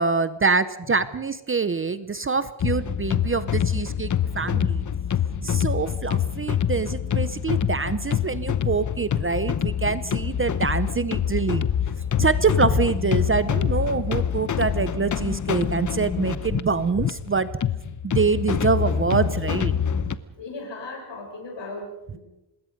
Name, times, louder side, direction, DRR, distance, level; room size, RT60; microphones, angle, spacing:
voice 1, 0.0-4.8 5.4-11.6 12.2-17.5 18.0-19.8, right 4 dB, 25° right, 14 dB, 0.7 m, -25 dB
sound 1, 2.6-20.2, left 8 dB, 40° left, 0.9 m, -26 dB
voice 2, 20.3-22.2, left 2 dB, 65° left, 1 dB, 7.8 m, -37 dB
26.5 x 21.0 x 5.3 m, 0.92 s
wide cardioid pair, 165°, 47 cm